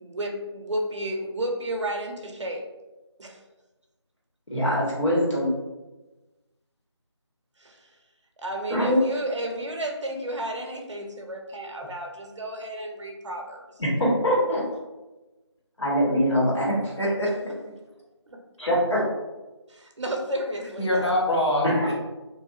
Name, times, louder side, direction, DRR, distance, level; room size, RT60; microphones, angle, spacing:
voice 1, 0.0-2.6 3.2-3.4 7.6-7.9 8.4-13.6 18.3-18.4 19.7-21.1, right 1 dB, 80° right, 2 dB, 0.6 m, -32 dB
voice 2, 4.5-5.5 8.7-9.0 13.8-14.6 15.8-16.7 18.6-19.0 21.6-21.9, equal, 85° left, -5 dB, 1.4 m, -23 dB
voice 3, 16.7-17.5 20.8-21.9, equal, 70° left, -3 dB, 0.9 m, -25 dB
2.5 x 2.4 x 2.4 m, 1.1 s
figure-of-eight pair, 170°, 15 cm